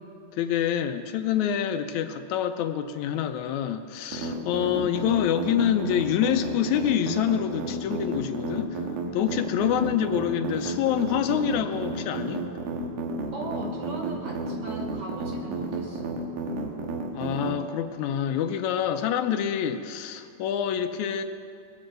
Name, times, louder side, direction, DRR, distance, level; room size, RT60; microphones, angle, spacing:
voice 1, 0.3-8.9 9.1-12.4 17.1-21.2, left 9 dB, 80° left, 9 dB, 1.9 m, -26 dB
sound 1, 4.1-17.5, right 3 dB, 85° right, 3.0 m, -32 dB
voice 2, 9.4-10.0 13.3-16.2, right 3 dB, 60° right, 1 dB, 1.7 m, -39 dB
20.5 x 7.7 x 7.6 m, 2.3 s
omnidirectional pair, 3.5 m